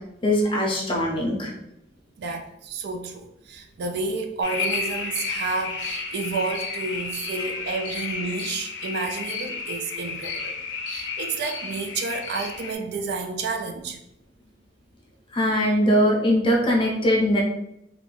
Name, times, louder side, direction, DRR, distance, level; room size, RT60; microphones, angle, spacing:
voice 1, 0.2-1.5 7.4-7.5 15.3-17.4, equal, 30° left, -2 dB, 0.6 m, -21 dB
voice 2, 2.2-10.6 10.9-14.0, right 4 dB, 60° right, 4 dB, 0.3 m, -30 dB
sound 1, 4.4-12.7, left 4 dB, 80° left, 0.5 m, -32 dB
2.5 x 2.2 x 3.2 m, 0.80 s
head